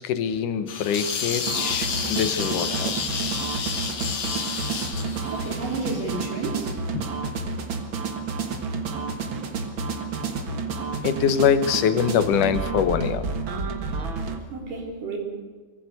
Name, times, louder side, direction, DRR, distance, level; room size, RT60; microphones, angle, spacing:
voice 1, 0.0-3.0 6.9-7.1 11.0-13.2, left 7 dB, 80° left, 11 dB, 2.7 m, -24 dB
sound 1, 0.7-6.5, left 6 dB, 60° left, 3.2 m, -30 dB
sound 2, 1.5-14.4, right 4 dB, 45° right, 2.1 m, -30 dB
voice 2, 5.3-6.7 14.5-15.2, right 3 dB, 90° right, 2 dB, 5.4 m, -31 dB
22.5 x 15.0 x 8.2 m, 1.4 s
omnidirectional pair, 3.7 m